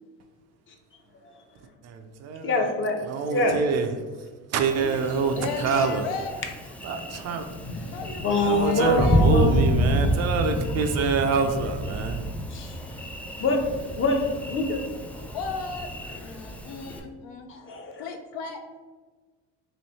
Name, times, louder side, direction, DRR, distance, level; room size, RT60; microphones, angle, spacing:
voice 1, 1.8-2.7 3.0-6.1 6.8-7.5 8.4-12.2, right 5 dB, 50° right, 6 dB, 0.5 m, -26 dB
voice 2, 2.4-3.0 3.3-3.6 7.7-9.8 12.5-13.1 13.4-13.6 14.0-14.2 14.5-14.8 16.2-16.3 16.9-17.0 17.5-18.1, left 2 dB, 40° left, 3 dB, 0.7 m, -26 dB
Thunder, 4.6-17.0, equal, 5° left, 0.3 m, -28 dB
voice 3, 5.3-6.4 7.9-8.3 8.6-10.8 15.3-15.9 16.1-17.5 18.0-18.6, left 4 dB, 75° left, 4 dB, 0.6 m, -35 dB
3.2 x 2.6 x 4.1 m, 1.3 s
supercardioid pair, 95°, 32 cm